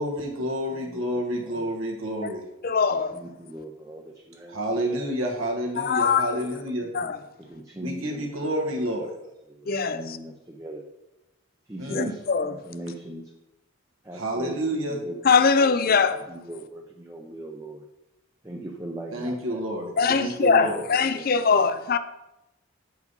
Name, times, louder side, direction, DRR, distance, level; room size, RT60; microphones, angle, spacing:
voice 1, 0.0-2.4 4.5-6.9 7.8-9.1 11.8-12.1 14.1-15.0 19.1-20.8, equal, 80° right, 1.4 m, -29 dB
voice 2, 0.7-1.7 2.9-4.6 6.8-7.1 7.4-8.3 9.0-9.2 9.5-10.8 11.7-13.3 14.0-15.2 15.6-17.8 18.4-20.0 20.6-21.6, right 1 dB, 15° right, 0.6 m, -40 dB
voice 3, 2.6-3.1 5.8-6.3 6.9-7.2 9.7-10.0 11.9-12.5 15.2-16.2 20.0-22.0, left 5 dB, 45° left, 0.5 m, -21 dB
8.1 x 4.8 x 5.3 m
head